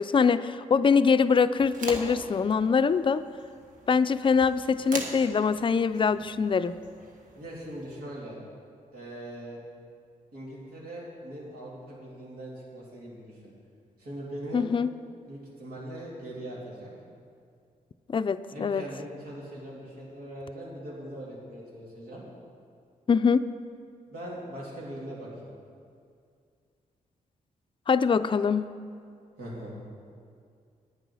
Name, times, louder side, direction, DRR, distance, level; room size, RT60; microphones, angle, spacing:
voice 1, 0.0-3.2 3.9-6.7 14.5-14.9 18.1-18.8 23.1-23.4 27.9-28.7, left 5 dB, 35° left, 12 dB, 0.4 m, -23 dB
sound 1, 1.6-8.0, right 2 dB, 65° right, 1.5 m, -42 dB
voice 2, 7.3-8.4 8.9-9.6 10.3-13.5 14.0-14.6 15.3-16.9 18.5-22.2 24.1-25.5 29.4-29.7, right 1 dB, 85° right, -5 dB, 3.3 m, -41 dB
9.7 x 9.2 x 6.3 m, 2.3 s
cardioid pair, 70°, 15 cm